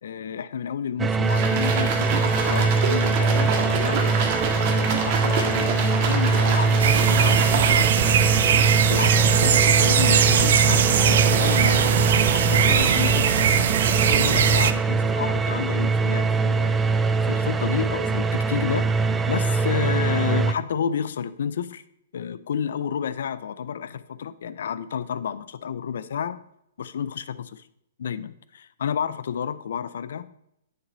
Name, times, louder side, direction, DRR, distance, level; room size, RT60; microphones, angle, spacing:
voice 1, 0.0-4.1 4.4-8.3 8.7-11.9 12.3-16.8 17.2-21.8 22.1-26.4 26.8-27.6 28.0-30.3, left 8 dB, 70° left, 16 dB, 0.6 m, -31 dB
sound 1, 1.0-20.5, right 4 dB, 10° right, 0.4 m, -23 dB
sound 2, 1.2-8.1, right 4 dB, 40° right, 1.6 m, -27 dB
sound 3, 6.8-14.7, right 8 dB, 60° right, 0.6 m, -20 dB
9.9 x 6.2 x 4.1 m, 0.77 s
hypercardioid pair, 155°, 0 cm